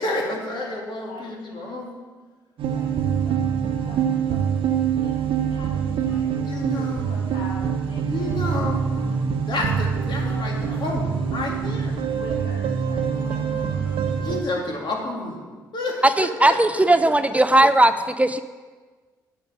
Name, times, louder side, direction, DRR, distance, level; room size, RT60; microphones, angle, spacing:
voice 1, 0.0-2.0 6.4-7.1 8.1-8.8 9.5-11.0 11.3-12.0 13.1-13.7 14.2-15.5 15.7-16.8 17.3-17.4, left 2 dB, 50° left, 0 dB, 2.3 m, -30 dB
voice 2, 0.5-1.3 2.7-4.0 4.3-4.7 5.0-5.2 5.5-9.6 10.2-11.8 12.1-14.6, left 2 dB, 70° left, -1 dB, 2.1 m, -44 dB
sound 1, 2.6-14.4, right 7 dB, 65° right, 1.0 m, -25 dB
voice 3, 16.0-18.4, right 1 dB, 15° right, 11 dB, 0.4 m, -17 dB
9.1 x 5.3 x 6.5 m, 1.4 s
hypercardioid pair, 45°, 10 cm